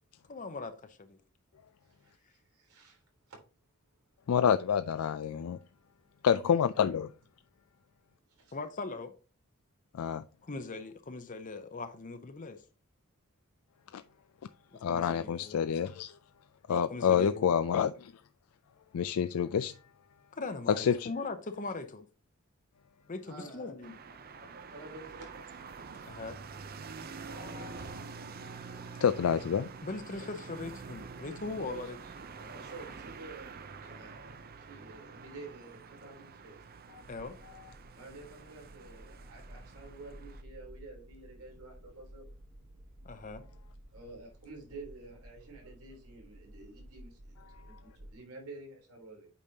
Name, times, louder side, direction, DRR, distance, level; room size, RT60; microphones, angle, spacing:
voice 1, 0.3-1.2 8.5-9.1 10.4-12.6 14.7-15.6 16.7-17.5 20.3-22.1 23.1-23.9 26.1-26.4 29.8-32.0 37.1-37.4 43.0-43.4, left 3 dB, 35° left, 0.7 m, -40 dB
voice 2, 1.8-3.4 8.3-8.6 23.3-26.0 27.2-27.8 30.2-30.3 31.5-36.6 37.9-42.3 43.9-49.3, right 2 dB, 85° right, 3.6 m, -50 dB
voice 3, 4.3-5.6 6.2-7.1 9.9-10.2 13.9-14.0 14.8-16.2 16.7-18.1 18.9-19.7 20.8-21.1 27.4-27.7 28.4-28.6 29.0-29.7, left 7 dB, 80° left, 0.4 m, -28 dB
sound 1, 23.8-40.4, right 5 dB, 45° right, 0.6 m, -47 dB
sound 2, 37.0-48.1, right 1 dB, 60° right, 1.5 m, -53 dB
8.4 x 5.2 x 2.8 m
head